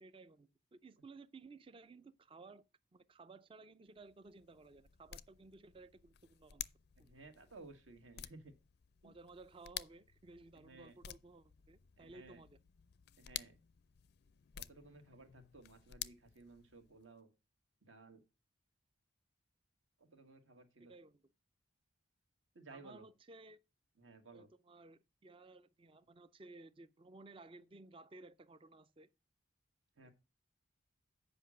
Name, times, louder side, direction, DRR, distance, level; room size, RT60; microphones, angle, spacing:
voice 1, 0.0-2.6 2.9-6.6 7.0-7.1 9.0-12.6 20.8-21.3 22.7-23.6 24.3-29.1 30.0-30.1, right 3 dB, 25° right, 0.4 m, -57 dB
sound 1, 3.9-17.1, left 12 dB, 50° left, 0.4 m, -52 dB
voice 2, 7.0-8.5 9.0-9.1 10.5-11.0 12.0-12.4 13.2-13.6 14.6-17.3 17.9-18.2 20.0-20.9 22.6-23.0 24.0-24.5 30.0-30.1, right 3 dB, 70° right, 1.7 m, -57 dB
7.9 x 5.4 x 6.2 m
head